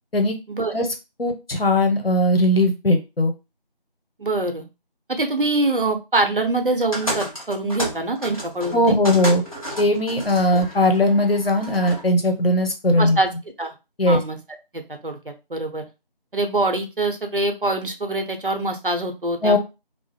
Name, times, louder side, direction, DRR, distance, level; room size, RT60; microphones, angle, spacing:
voice 1, 1.2-3.3 8.7-9.4 9.8-13.2 14.0-14.2 19.4-19.6, left 1 dB, 75° left, 4 dB, 0.9 m, -19 dB
voice 2, 4.2-4.7 5.1-9.0 10.5-10.6 13.0-13.3 13.6-13.7 14.1-14.4 14.7-15.8 16.3-19.6, right 2 dB, 65° right, 5 dB, 0.7 m, -24 dB
sound 1, 6.9-12.1, equal, 35° left, 0.9 m, -32 dB
2.7 x 2.0 x 3.3 m, 0.27 s
figure-of-eight pair, 180°, 29 cm